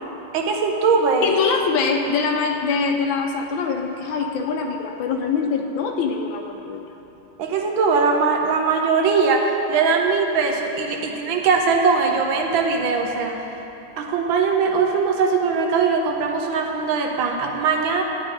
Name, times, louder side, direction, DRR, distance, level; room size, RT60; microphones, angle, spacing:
voice 1, 0.3-1.3 7.4-13.4 14.0-18.0, right 5 dB, 75° right, 2 dB, 1.5 m, -20 dB
voice 2, 1.2-6.9, left 5 dB, 75° left, 3 dB, 1.4 m, -23 dB
10.5 x 9.1 x 3.8 m, 3.0 s
omnidirectional pair, 2.3 m